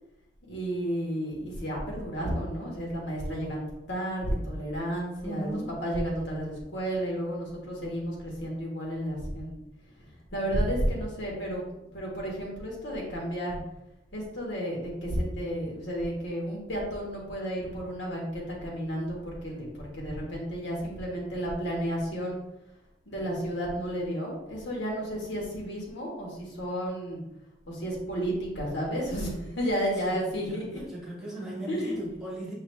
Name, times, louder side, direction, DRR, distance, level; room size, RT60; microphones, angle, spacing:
voice 1, 0.5-9.6 10.3-13.6 14.1-22.4 23.1-27.2 27.7-30.8 31.7-32.0, equal, 80° left, -2 dB, 1.4 m, -32 dB
voice 2, 5.2-5.7 30.0-30.2 30.5-32.5, right 1 dB, 5° right, -6 dB, 1.2 m, -37 dB
5.8 x 2.7 x 3.3 m, 0.90 s
head